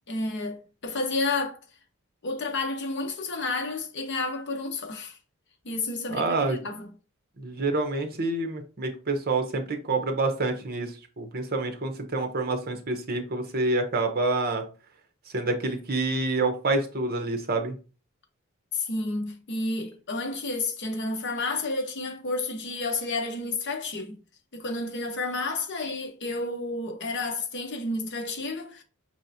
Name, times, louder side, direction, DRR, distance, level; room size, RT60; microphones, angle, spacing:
voice 1, 0.1-1.6 2.2-5.2 5.6-6.9 18.7-24.2 24.5-28.8, left 3 dB, 55° left, 0.9 m, -31 dB
voice 2, 6.1-6.6 7.4-14.6 15.3-17.7, right 2 dB, 45° right, 0.8 m, -27 dB
5.5 x 3.1 x 2.7 m
head